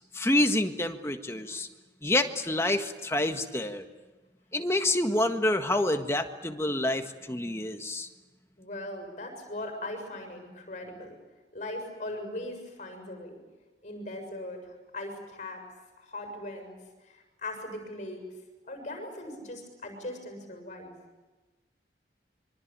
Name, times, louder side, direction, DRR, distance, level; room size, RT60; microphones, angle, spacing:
voice 1, 0.1-1.7 2.0-3.8 4.5-8.1, left 1 dB, 15° left, 6 dB, 1.6 m, -27 dB
voice 2, 8.6-11.2 11.5-13.4 13.8-15.6 16.0-16.8 17.0-18.2 18.6-20.9, left 1 dB, 40° left, 5 dB, 6.9 m, -39 dB
25.5 x 24.5 x 9.0 m, 1.2 s
head